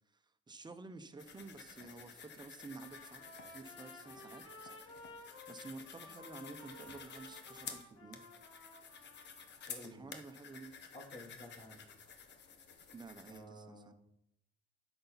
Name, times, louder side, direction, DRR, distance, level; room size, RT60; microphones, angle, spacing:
voice 1, 0.1-3.2 3.5-4.4 4.9-8.2 9.8-10.9 12.9-13.9, right 3 dB, 20° right, 8 dB, 0.9 m, -51 dB
sound 1, 1.2-13.4, left 6 dB, 60° left, 1.1 m, -52 dB
Trumpet, 2.7-9.6, left 2 dB, 85° left, 3.1 m, -55 dB
voice 2, 9.7-10.1 10.9-11.8 13.3-13.9, left 1 dB, 35° left, -1 dB, 2.9 m, -52 dB
10.5 x 7.0 x 4.1 m, 0.77 s
cardioid pair, 90°, 20 cm